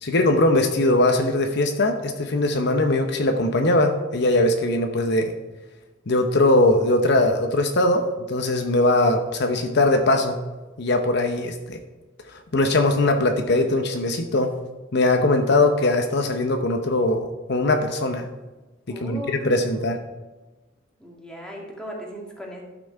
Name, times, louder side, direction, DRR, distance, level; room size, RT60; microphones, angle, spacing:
voice 1, 0.0-5.3 6.1-10.4 10.8-11.8 12.3-14.5 14.9-18.3 18.9-20.0, left 2 dB, 60° left, 5 dB, 0.8 m, -21 dB
voice 2, 18.9-19.8 21.0-22.6, equal, 5° left, -2 dB, 2.0 m, -37 dB
12.5 x 6.0 x 4.7 m, 1.2 s
head